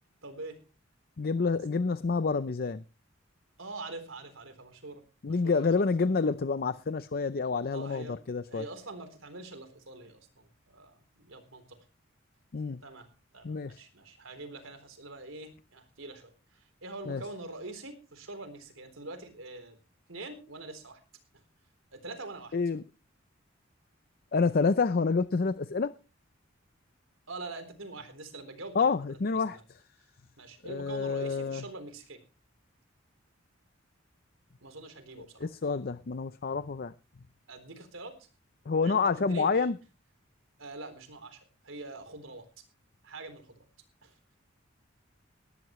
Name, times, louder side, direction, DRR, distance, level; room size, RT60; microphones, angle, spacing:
voice 1, 0.2-0.6 3.6-5.7 7.7-8.2 8.5-11.8 12.8-13.1 13.3-19.8 20.1-21.0 21.9-22.6 27.3-29.6 30.4-32.2 34.6-35.5 37.5-38.2 38.8-39.7 40.6-42.5 43.0-43.6 44.0-44.1, right 2 dB, 85° right, 3.9 m, -44 dB
voice 2, 1.2-2.8 5.2-8.6 12.5-12.8 13.4-13.8 17.1-17.2 22.5-22.8 24.3-25.9 28.8-29.8 30.6-31.6 35.4-36.9 38.7-39.8, left 4 dB, 50° left, 0.6 m, -28 dB
19.5 x 12.5 x 3.2 m
head